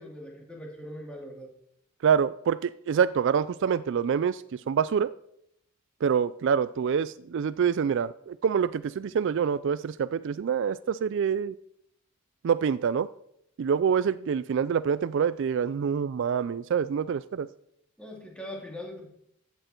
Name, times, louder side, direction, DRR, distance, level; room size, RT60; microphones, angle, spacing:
voice 1, 0.0-1.5 18.0-19.1, left 1 dB, 5° left, -1 dB, 2.8 m, -41 dB
voice 2, 2.0-5.1 6.0-11.6 12.4-13.1 13.6-17.5, right 7 dB, 60° right, 16 dB, 0.3 m, -26 dB
14.5 x 9.0 x 4.5 m, 0.75 s
head